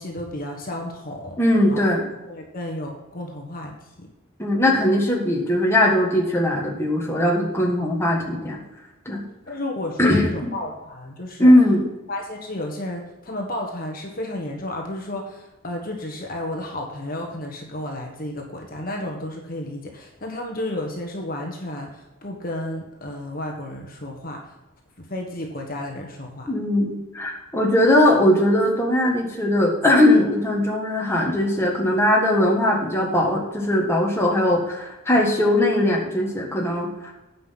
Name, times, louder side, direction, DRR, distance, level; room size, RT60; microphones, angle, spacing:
voice 1, 0.0-1.4 1.7-1.9 2.3-4.1 9.5-11.5 12.1-24.5 25.0-26.5, left 1 dB, 40° left, 1 dB, 1.4 m, -32 dB
voice 2, 1.4-2.0 4.4-8.6 9.0-9.2 10.0-10.3 11.4-11.8 26.5-37.1, left 1 dB, 10° left, -2 dB, 1.6 m, -19 dB
9.5 x 5.7 x 5.8 m, 1.1 s
head